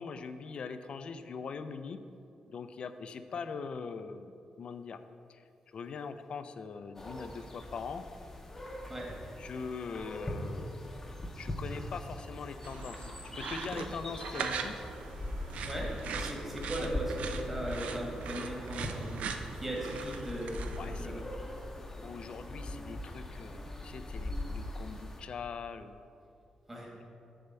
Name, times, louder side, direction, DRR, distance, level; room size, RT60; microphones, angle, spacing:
voice 1, 0.0-2.0 2.5-5.0 5.3-8.0 9.4-11.1 11.4-13.1 13.4-14.7 16.8-16.9 20.8-21.2 21.9-26.1 27.0-27.1, left 5 dB, 50° left, 10 dB, 0.4 m, -42 dB
sound 1, 6.9-25.2, left 1 dB, 20° left, 0.7 m, -41 dB
sound 2, 12.6-21.0, right 5 dB, 85° right, 0.5 m, -41 dB
voice 2, 15.6-21.2 26.7-26.9, right 1 dB, 15° right, -2 dB, 1.5 m, -38 dB
6.9 x 4.3 x 6.7 m, 2.5 s
wide cardioid pair, 155°, 2 cm